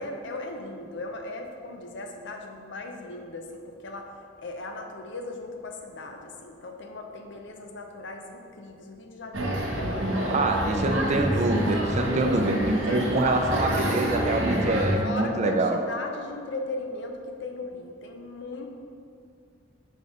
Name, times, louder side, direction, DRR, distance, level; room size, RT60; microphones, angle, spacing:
voice 1, 0.0-4.1 4.4-10.6 11.0-11.3 12.9-13.5 15.0-18.7, left 2 dB, 65° left, 3 dB, 0.6 m, -37 dB
sound 1, 9.3-15.0, right 1 dB, 90° right, 1.1 m, -27 dB
voice 2, 10.3-15.8, right 2 dB, 40° right, 4 dB, 0.5 m, -25 dB
5.4 x 4.2 x 4.8 m, 2.4 s
head